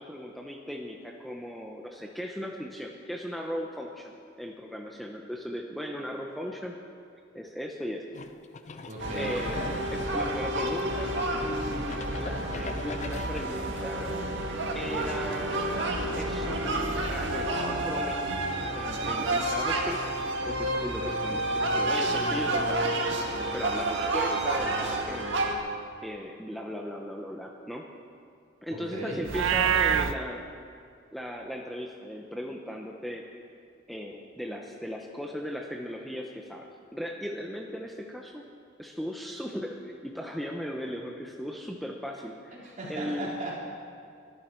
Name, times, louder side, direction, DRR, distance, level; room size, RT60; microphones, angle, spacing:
voice 1, 0.0-4.1 4.4-6.8 7.3-8.0 8.8-8.9 9.1-9.6 9.9-14.2 14.7-18.4 18.7-20.0 20.5-22.9 23.4-25.7 26.0-27.9 28.6-30.5 31.1-33.3 33.9-38.4 38.8-43.3, equal, ahead, 0 dB, 0.8 m, -37 dB
sound 1, 8.1-11.2 11.6-13.9, left 4 dB, 35° left, 0.5 m, -42 dB
voice 2, 8.9-9.3 28.7-29.2 42.6-43.5, right 1 dB, 40° right, -5 dB, 3.9 m, -36 dB
sound 2, 9.0-25.5, right 1 dB, 65° right, 1.8 m, -30 dB
Livestock farm animals working animals, 29.2-30.1, right 7 dB, 80° right, 0.6 m, -24 dB
23.0 x 12.0 x 4.6 m, 2.3 s
head